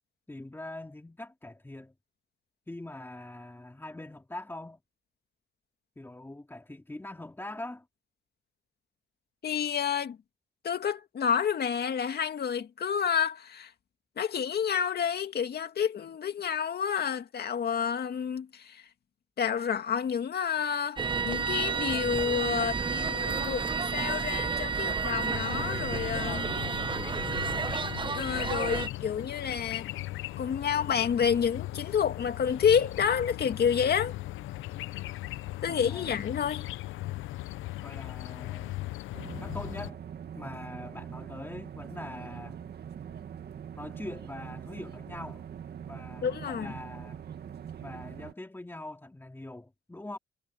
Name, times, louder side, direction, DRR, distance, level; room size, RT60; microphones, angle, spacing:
voice 1, 0.3-1.9 2.7-4.8 6.0-7.9 35.7-36.1 37.5-39.0 39.4-40.0 40.4-42.6 43.8-45.4 45.9-47.2 47.8-50.2, left 2 dB, 10° left, 2.9 m, -43 dB
voice 2, 9.4-10.2 10.6-13.7 14.2-18.8 19.4-21.0 21.2-26.5 28.1-29.9 30.4-34.1 35.6-36.7 46.2-46.7, left 7 dB, 55° left, 2.3 m, -29 dB
sound 1, 21.0-28.9, right 5 dB, 25° right, 1.2 m, -31 dB
sound 2, 25.3-39.9, left 16 dB, 85° left, 0.7 m, -38 dB
sound 3, 39.1-48.3, right 8 dB, 55° right, 1.9 m, -43 dB
cardioid pair, 90°, 20 cm